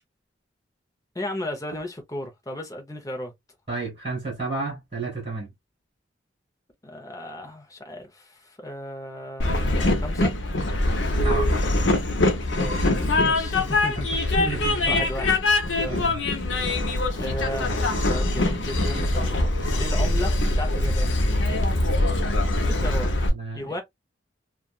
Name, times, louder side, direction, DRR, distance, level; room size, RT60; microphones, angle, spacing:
voice 1, 1.1-3.3 6.8-10.3 12.6-14.5 14.9-15.4 15.8-16.1 16.3-16.5 17.2-21.2 22.6-23.1 23.5-23.8, left 1 dB, 20° left, 0.8 m, -35 dB
voice 2, 3.7-5.5 11.2-11.5 14.3-15.0 15.9-16.2 17.2-17.3 23.3-23.7, right 3 dB, 35° right, 1.6 m, -31 dB
Train, 9.4-23.3, left 2 dB, 80° left, 0.8 m, -23 dB
2.9 x 2.4 x 2.3 m
head